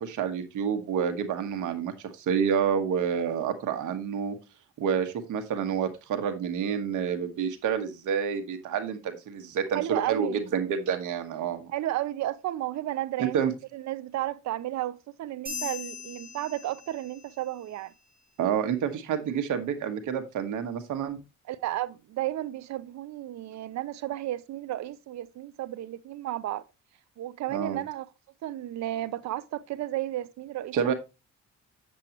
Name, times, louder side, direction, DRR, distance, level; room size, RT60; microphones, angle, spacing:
voice 1, 0.0-4.3 4.8-11.7 13.2-13.5 18.4-21.2 27.5-27.8 30.7-30.9, right 7 dB, 80° right, 1.5 m, -28 dB
voice 2, 9.7-10.4 11.7-17.9 21.5-26.6 27.2-28.1 28.4-30.9, right 14 dB, 65° right, 0.6 m, -33 dB
sound 1, 15.5-17.3, left 5 dB, 30° right, 5.1 m, -39 dB
7.7 x 7.5 x 2.9 m
cardioid pair, 90°, 30 cm